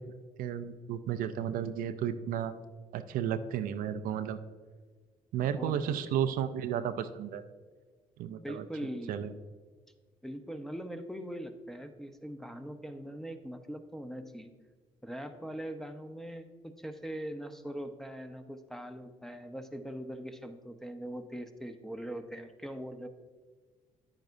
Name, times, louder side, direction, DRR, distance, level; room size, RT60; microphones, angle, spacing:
voice 1, 0.4-2.6 2.9-4.4 5.3-7.4 8.2-8.7 9.1-9.3, right 9 dB, 75° right, 10 dB, 0.5 m, -33 dB
voice 2, 5.5-6.1 8.4-9.2 10.2-14.5 15.0-23.1, equal, 5° left, 7 dB, 0.8 m, -41 dB
9.6 x 9.0 x 2.6 m, 1.5 s
supercardioid pair, 70°, 15 cm